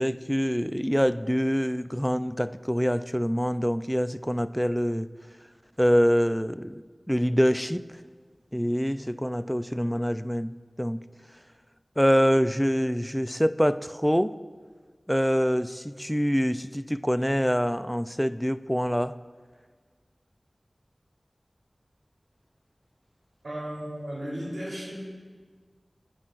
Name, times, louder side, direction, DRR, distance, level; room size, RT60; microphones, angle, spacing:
voice 1, 0.0-5.1 5.8-6.8 7.1-8.0 8.5-11.0 12.0-14.3 15.1-19.1, equal, ahead, 12 dB, 0.4 m, -25 dB
voice 2, 23.4-25.0, equal, 90° right, -4 dB, 3.4 m, -35 dB
20.0 x 9.7 x 2.5 m, 1.5 s
wide cardioid pair, 45°, 0 cm